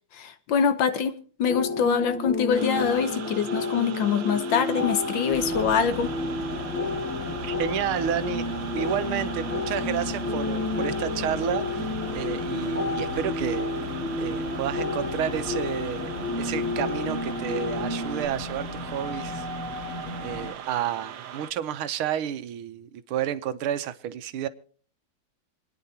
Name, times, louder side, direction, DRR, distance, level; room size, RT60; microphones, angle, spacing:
voice 1, 0.1-6.1, left 7 dB, 65° left, 1.7 m, -24 dB
sound 1, 1.5-18.3, left 2 dB, 5° left, 4.4 m, -31 dB
sound 2, 2.5-21.5, right 9 dB, 65° right, 1.6 m, -40 dB
sound 3, 5.3-20.5, left 3 dB, 40° left, 2.6 m, -36 dB
voice 2, 7.4-8.5 8.7-13.7 14.2-19.5 19.8-24.5, right 10 dB, 90° right, 1.7 m, -31 dB
27.0 x 10.0 x 2.9 m
omnidirectional pair, 2.3 m